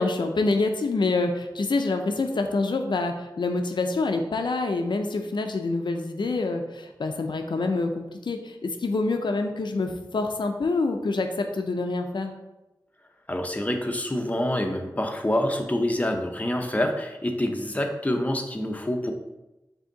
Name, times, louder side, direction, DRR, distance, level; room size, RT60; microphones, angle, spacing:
voice 1, 0.0-12.3, left 3 dB, 85° left, 5 dB, 0.4 m, -26 dB
voice 2, 13.3-19.1, left 1 dB, 20° left, 4 dB, 0.6 m, -26 dB
5.0 x 2.7 x 3.8 m, 1.0 s
wide cardioid pair, 45°, 8 cm